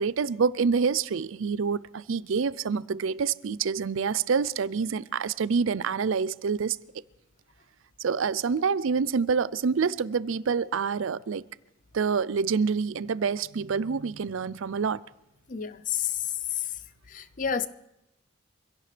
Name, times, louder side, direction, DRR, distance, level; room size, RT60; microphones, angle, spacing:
voice 1, 0.0-6.8 8.0-11.4 11.9-15.0, right 5 dB, 85° right, 0.5 m, -27 dB
voice 2, 15.5-16.8 17.1-17.7, left 8 dB, 40° left, 0.6 m, -30 dB
25.0 x 16.5 x 3.4 m
head